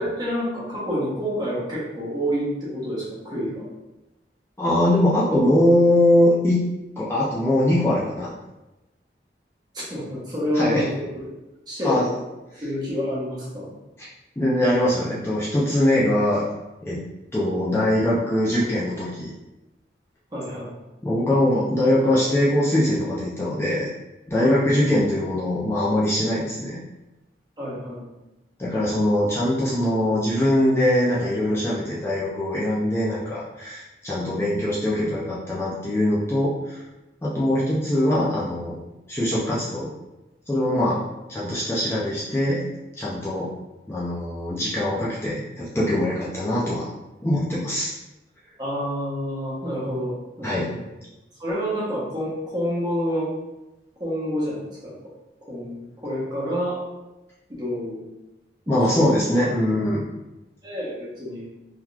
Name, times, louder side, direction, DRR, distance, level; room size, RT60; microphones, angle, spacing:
voice 1, 0.0-3.7 9.7-11.2 11.7-12.1 12.6-13.7 20.3-20.7 24.4-24.6 27.6-28.0 48.6-50.8 51.4-53.3 54.0-54.9 55.5-56.8 57.5-58.0 58.7-58.8 60.6-61.4, equal, 25° right, -7 dB, 1.0 m, -28 dB
voice 2, 4.6-6.6 7.0-8.3 10.5-10.8 11.8-12.1 14.0-14.1 14.4-16.4 16.8-17.0 17.3-19.3 21.0-23.9 24.3-26.8 28.6-36.8 37.2-38.8 39.1-39.9 40.5-41.0 41.3-42.7 43.0-43.5 43.9-46.9 47.2-47.9 50.4-50.7 58.7-60.1, left 1 dB, 15° left, -8 dB, 0.5 m, -22 dB
3.7 x 3.0 x 2.4 m, 1.0 s
head